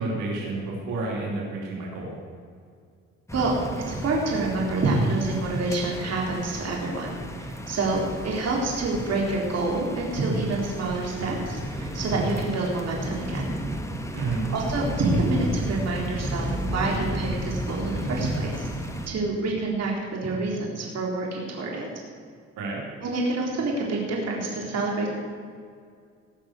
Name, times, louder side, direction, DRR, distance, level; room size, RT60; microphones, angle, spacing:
voice 1, 0.0-2.1 14.1-14.5 22.6-22.8, right 3 dB, 90° right, -3 dB, 3.3 m, -30 dB
sound 1, 3.3-19.1, equal, 10° left, 1.6 m, -33 dB
voice 2, 3.9-13.5 14.1-19.9 20.2-21.9 23.0-25.1, right 3 dB, 55° right, -2 dB, 3.7 m, -27 dB
18.0 x 6.2 x 8.1 m, 2.2 s
cardioid pair, 90°, 30 cm